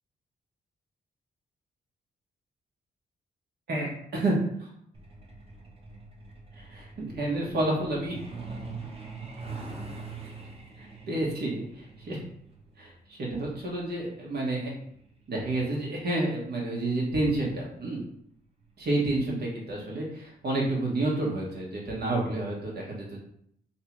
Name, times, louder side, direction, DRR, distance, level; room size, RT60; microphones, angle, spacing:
voice 1, 3.7-4.7 6.6-8.1 10.8-12.2 12.8-14.7 15.3-18.0 18.8-23.2, right 2 dB, 70° right, -3 dB, 1.4 m, -30 dB
Truck, 4.9-17.2 18.5-18.6 19.0-19.2 19.6-19.9 20.2-20.3 20.8-20.9, right 4 dB, 35° right, 1.0 m, -44 dB
3.3 x 2.7 x 4.6 m, 0.69 s
cardioid pair, 120°, 17 cm